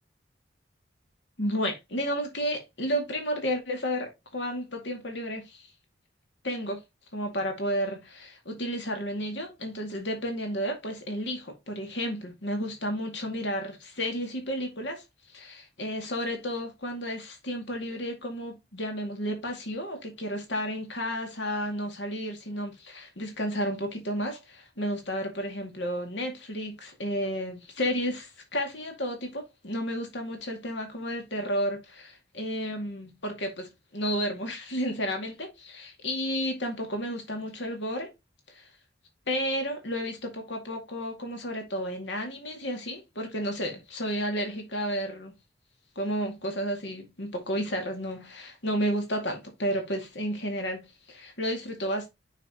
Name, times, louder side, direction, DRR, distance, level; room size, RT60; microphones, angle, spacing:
voice 1, 1.4-5.7 6.4-6.8 7.1-15.0 15.3-38.1 38.5-38.6 39.3-45.4 46.0-52.1, equal, 75° left, 2.1 m, -32 dB
6.4 x 6.0 x 2.9 m
head